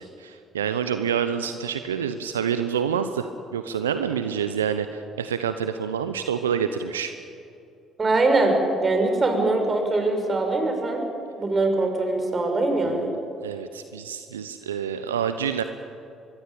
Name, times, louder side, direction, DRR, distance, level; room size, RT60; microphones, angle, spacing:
voice 1, 0.0-7.1 12.8-15.6, right 8 dB, 85° right, 10 dB, 0.8 m, -28 dB
voice 2, 8.0-11.1 11.4-13.1, right 2 dB, 35° right, 4 dB, 6.3 m, -22 dB
24.5 x 21.0 x 8.7 m, 2.6 s
hypercardioid pair, 50°, 0 cm